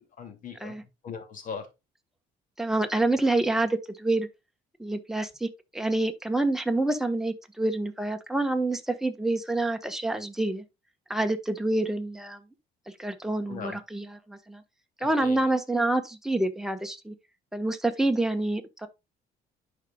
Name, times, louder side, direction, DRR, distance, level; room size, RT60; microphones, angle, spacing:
voice 1, 0.0-1.7 13.5-13.8 15.0-15.5, left 6 dB, 50° left, 2.5 m, -40 dB
voice 2, 2.6-4.3 4.8-10.6 11.1-12.4 13.0-14.6 15.0-17.1 17.5-18.9, right 2 dB, ahead, 1.2 m, -27 dB
11.0 x 4.9 x 2.3 m
cardioid pair, 110°, 17 cm